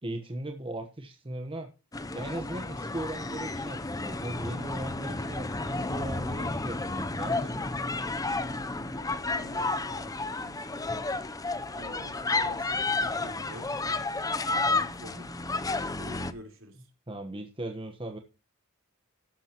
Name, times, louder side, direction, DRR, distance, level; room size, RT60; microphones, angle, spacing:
voice 1, 0.0-1.7 2.1-7.7 14.7-15.3 17.1-18.2, right 1 dB, 25° right, 1.1 m, -38 dB
sound 1, 1.9-16.3, left 3 dB, 15° left, 0.6 m, -32 dB
voice 2, 9.0-11.1 11.7-13.8 14.4-15.3 15.7-16.9, right 1 dB, 60° right, 4.1 m, -48 dB
13.5 x 11.5 x 3.0 m
head